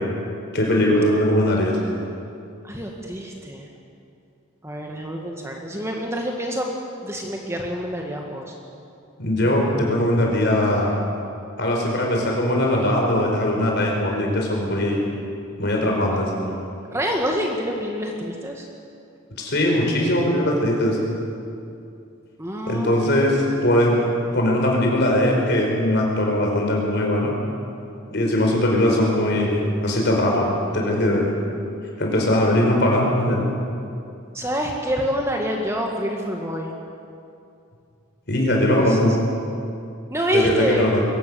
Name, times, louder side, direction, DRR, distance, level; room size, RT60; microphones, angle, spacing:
voice 1, 0.5-1.7 9.2-10.9 11.6-15.0 15.6-16.3 19.4-21.0 22.6-24.0 24.3-27.3 28.1-31.3 32.0-33.4 38.3-39.1 40.3-41.0, left 1 dB, 50° left, -1 dB, 4.8 m, -20 dB
voice 2, 2.6-3.7 4.6-6.7 7.0-8.5 16.9-18.7 22.4-23.2 34.3-36.7 38.7-39.0 40.1-40.9, equal, 15° right, 1 dB, 1.6 m, -27 dB
22.5 x 17.5 x 7.0 m, 2.6 s
head